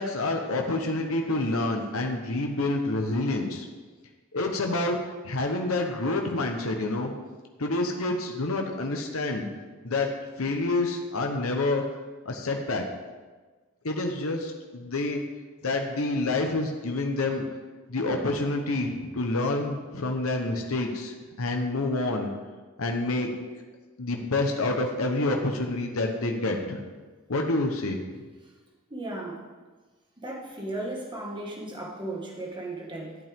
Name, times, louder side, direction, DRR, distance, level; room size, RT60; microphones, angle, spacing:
voice 1, 0.0-3.6 4.3-5.0 5.2-7.1 7.6-9.5 9.8-10.1 10.4-11.8 12.2-12.8 13.8-15.2 15.6-17.4 17.9-22.3 22.8-23.3 24.0-26.8 27.3-28.0, left 2 dB, 80° left, 3 dB, 1.1 m, -28 dB
voice 2, 28.9-29.4 30.2-33.2, right 2 dB, 20° right, -2 dB, 1.9 m, -35 dB
13.0 x 8.8 x 3.6 m, 1.3 s
head